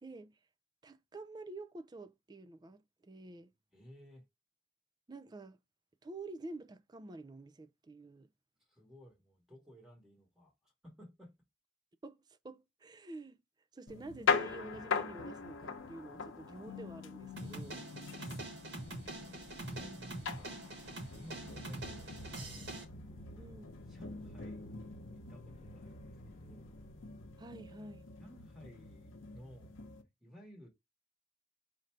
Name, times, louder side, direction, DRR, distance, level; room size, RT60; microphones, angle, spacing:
voice 1, 0.0-0.4 0.8-3.5 5.1-5.6 6.0-8.3 12.0-13.4 13.7-17.9 19.7-20.2 23.3-23.8 27.4-28.0, right 2 dB, 20° right, 0.3 m, -49 dB
voice 2, 3.7-4.2 8.7-11.4 17.8-18.8 19.7-20.7 21.1-22.9 23.9-26.8 28.2-29.8 30.2-30.7, equal, ahead, 1.2 m, -57 dB
sound 1, 13.9-30.0, left 5 dB, 85° left, 0.8 m, -41 dB
sound 2, 17.4-22.8, right 2 dB, 75° right, 1.8 m, -45 dB
sound 3, 18.8-27.3, left 1 dB, 35° left, 0.6 m, -57 dB
4.2 x 2.6 x 4.5 m
head